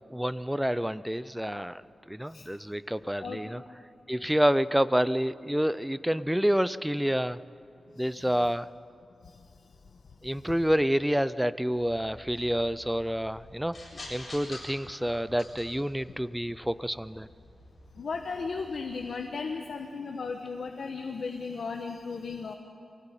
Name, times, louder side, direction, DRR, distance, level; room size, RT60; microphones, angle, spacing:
voice 1, 0.1-3.6 4.1-7.4 8.0-8.7 10.2-13.8 14.1-17.3, equal, 5° right, 15 dB, 0.5 m, -28 dB
sound 1, 11.7-19.1, left 1 dB, 40° left, 7.9 m, -49 dB
voice 2, 18.0-22.5, left 4 dB, 75° left, 3 dB, 1.3 m, -35 dB
23.5 x 17.5 x 9.1 m, 2.6 s
wide cardioid pair, 105°, 0 cm